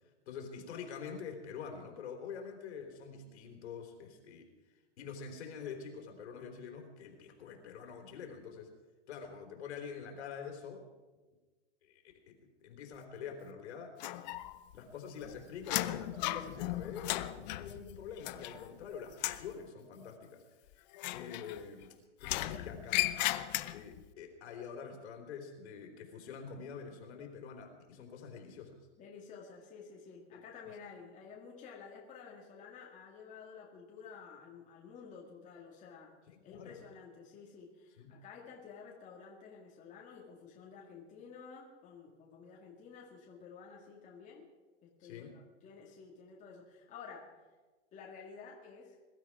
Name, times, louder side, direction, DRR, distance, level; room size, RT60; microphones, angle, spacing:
voice 1, 0.3-4.5 5.0-8.7 9.1-10.9 11.8-13.9 14.7-20.4 21.1-22.0 22.2-23.2 23.7-28.8 30.3-30.4 36.3-36.8 38.0-38.1 45.0-45.4, left 6 dB, 65° left, 4 dB, 3.8 m, -46 dB
sound 1, 14.0-14.8 15.0-18.8 19.1-19.5 20.9-21.8 22.2-24.0, left 16 dB, 40° left, 0.7 m, -36 dB
voice 2, 29.0-36.1 36.4-44.5 44.8-47.3 47.9-49.0, left 5 dB, 20° left, -2 dB, 2.2 m, -52 dB
21.5 x 12.5 x 4.9 m, 1.3 s
supercardioid pair, 155°, 35 cm